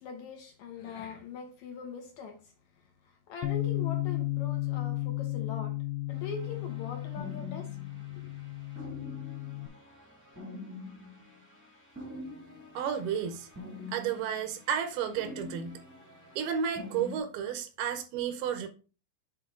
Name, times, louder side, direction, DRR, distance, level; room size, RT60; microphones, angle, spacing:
voice 1, 0.0-2.4 3.3-5.7 6.1-7.7 8.1-8.3, left 5 dB, 70° left, 1.9 m, -42 dB
Bass guitar, 3.4-9.7, left 17 dB, 85° left, 2.4 m, -34 dB
sound 1, 6.1-17.2, left 2 dB, 15° right, 0.6 m, -46 dB
voice 2, 12.7-13.5 13.9-15.8 16.4-18.7, right 8 dB, 80° right, 2.6 m, -32 dB
7.9 x 4.3 x 3.6 m
omnidirectional pair, 4.4 m